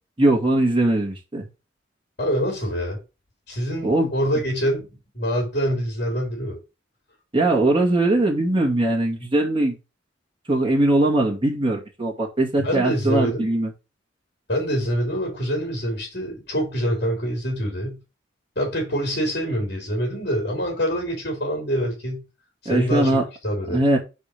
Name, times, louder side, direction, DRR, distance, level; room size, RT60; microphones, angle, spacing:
voice 1, 0.2-1.5 3.8-4.1 4.3-4.4 7.3-9.8 10.5-13.7 22.7-23.2 23.7-24.0, right 2 dB, 25° right, 2.2 m, -20 dB
voice 2, 2.2-3.0 3.5-6.6 12.6-13.5 14.5-18.0 18.5-22.2 22.6-23.8, equal, 55° left, 3.1 m, -25 dB
5.1 x 4.4 x 6.0 m
head